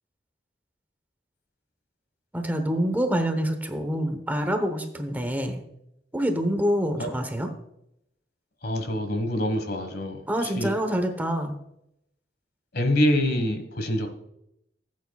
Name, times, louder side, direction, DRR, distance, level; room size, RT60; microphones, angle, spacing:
voice 1, 2.3-5.6 6.1-7.5 10.3-11.6, equal, 10° right, 6 dB, 0.9 m, -26 dB
voice 2, 8.6-10.7 12.7-14.1, left 1 dB, 60° left, 7 dB, 1.5 m, -25 dB
15.0 x 8.4 x 2.3 m, 0.79 s
head